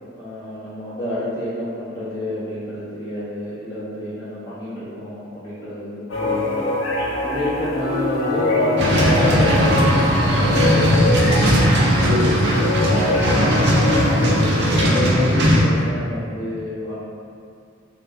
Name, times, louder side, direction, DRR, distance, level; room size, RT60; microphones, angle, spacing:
voice 1, 0.2-6.7 7.2-11.5 11.8-12.6 13.1-16.9, left 1 dB, 20° left, -13 dB, 0.4 m, -28 dB
sound 1, 6.1-15.0, left 2 dB, 75° left, 0.5 m, -23 dB
sound 2, 8.8-15.6, equal, 55° right, 0.4 m, -18 dB
2.2 x 2.1 x 3.2 m, 2.3 s
head